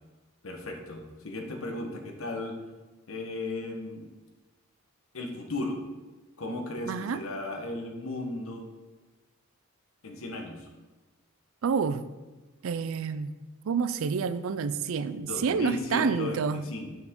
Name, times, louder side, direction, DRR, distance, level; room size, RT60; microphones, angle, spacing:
voice 1, 0.4-2.6 3.1-4.1 5.1-5.8 6.4-8.7 10.0-10.7 15.2-16.9, left 2 dB, 70° left, 3 dB, 1.2 m, -35 dB
voice 2, 6.9-7.2 11.6-12.0 12.6-13.3 13.6-16.6, right 6 dB, 65° right, 14 dB, 0.4 m, -28 dB
7.3 x 5.9 x 3.7 m, 1.2 s
head